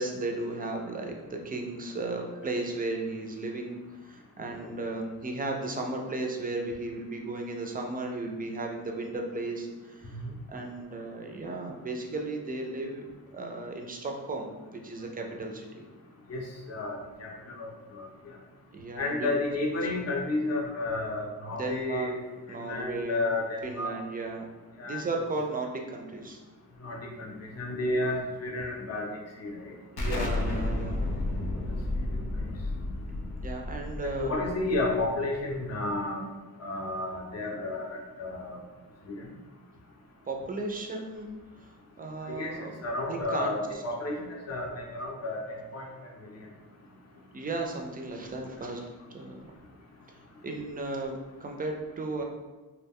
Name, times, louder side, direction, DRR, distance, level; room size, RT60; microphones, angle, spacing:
voice 1, 0.0-10.2 10.5-13.0 13.3-15.9 18.7-19.3 21.6-22.1 22.5-23.2 23.6-24.5 24.8-26.4 29.9-31.1 33.4-34.4 40.3-41.3 41.6-41.7 42.0-42.7 43.1-43.8 47.3-49.5 50.1-50.2 50.4-52.2, right 2 dB, 25° right, 2 dB, 0.3 m, -35 dB
voice 2, 16.3-17.3 17.6-18.1 19.0-22.1 22.6-23.9 24.8-25.0 26.8-29.1 29.4-29.7 32.1-32.5 34.0-36.2 36.6-38.6 39.1-39.3 42.2-42.5 42.8-44.2 44.5-45.9 46.2-46.3, left 2 dB, 40° left, 0 dB, 0.6 m, -32 dB
Explosion, 30.0-35.4, left 2 dB, 85° left, 0.5 m, -32 dB
2.2 x 2.1 x 3.5 m, 1.3 s
wide cardioid pair, 105°, 38 cm